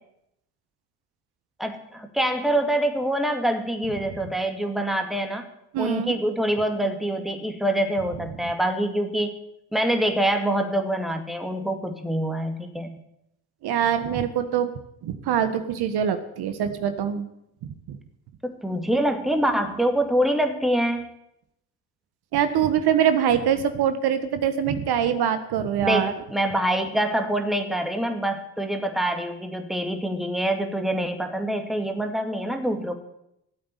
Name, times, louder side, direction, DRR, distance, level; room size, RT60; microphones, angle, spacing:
voice 1, 1.6-5.5 5.8-9.4 9.7-13.0 18.4-21.1 25.8-32.9, right 1 dB, ahead, 5 dB, 2.2 m, -25 dB
voice 2, 5.7-6.1 13.6-14.7 15.0-17.2 17.9-18.0 22.3-26.1, right 9 dB, 60° right, 9 dB, 1.6 m, -23 dB
14.0 x 8.5 x 9.9 m, 0.81 s
supercardioid pair, 80°, 43 cm